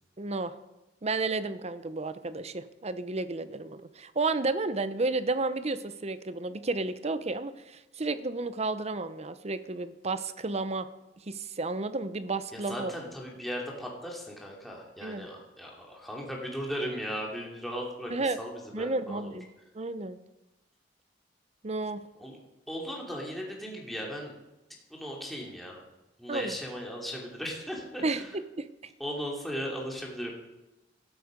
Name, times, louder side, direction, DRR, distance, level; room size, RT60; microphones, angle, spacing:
voice 1, 0.2-0.5 1.0-10.9 11.3-12.9 15.0-15.3 18.1-18.4 18.7-19.4 19.7-20.2 21.6-22.0 26.3-26.5 28.0-28.2 28.6-28.7, right 3 dB, 35° right, 12 dB, 0.8 m, -32 dB
voice 2, 12.5-19.4 22.2-22.4 22.7-24.3 24.9-25.8 26.2-28.4 29.0-30.3, equal, ahead, -2 dB, 2.9 m, -37 dB
16.0 x 12.5 x 5.2 m, 0.96 s
head